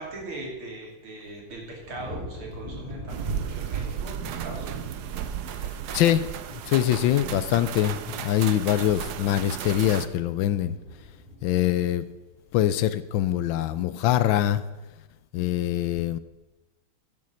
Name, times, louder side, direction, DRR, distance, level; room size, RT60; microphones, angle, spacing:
voice 1, 0.0-4.7 15.5-16.0, right 2 dB, 90° right, -1 dB, 3.7 m, -40 dB
sound 1, 1.8-13.1 13.6-14.0, left 1 dB, 15° right, 2.5 m, -43 dB
sound 2, 3.1-10.1, right 9 dB, 65° right, 1.0 m, -34 dB
voice 2, 5.9-10.8 11.4-12.0 12.5-14.6 15.3-16.2, left 12 dB, 75° left, 14 dB, 1.2 m, -24 dB
12.5 x 6.9 x 6.4 m, 1.1 s
omnidirectional pair, 2.3 m